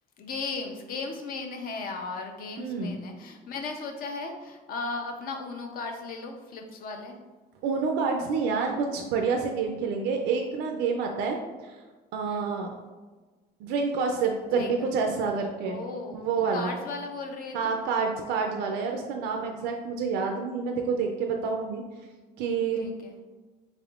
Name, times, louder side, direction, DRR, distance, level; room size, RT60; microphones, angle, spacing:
voice 1, 0.2-7.2 12.2-12.5 14.5-14.9 15.6-17.7 22.8-23.2, left 3 dB, 60° left, 4 dB, 0.6 m, -36 dB
voice 2, 2.6-3.0 7.6-11.4 11.6-11.8 12.1-12.7 13.6-15.8 16.1-16.8 17.5-21.8 22.4-22.9, right 5 dB, 85° right, 2 dB, 0.4 m, -28 dB
3.6 x 3.4 x 2.4 m, 1.3 s
cardioid pair, 110°, 17 cm